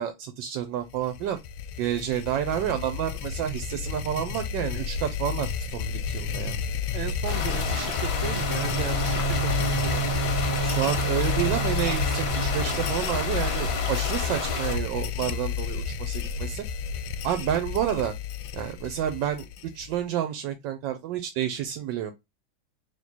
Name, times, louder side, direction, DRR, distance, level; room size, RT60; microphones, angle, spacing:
voice 1, 0.0-1.4 1.8-6.6 10.6-16.6 17.2-18.1 18.5-19.5 19.7-22.1, right 10 dB, 75° right, 1.3 m, -29 dB
sound 1, 0.9-20.0, left 7 dB, 75° left, 1.2 m, -31 dB
voice 2, 6.9-10.1, right 10 dB, 90° right, 1.4 m, -36 dB
sound 2, 7.3-14.8, left 4 dB, 45° left, 0.9 m, -32 dB
Bowed string instrument, 8.1-12.9, right 8 dB, 15° right, 0.7 m, -31 dB
3.7 x 2.7 x 4.0 m
omnidirectional pair, 2.2 m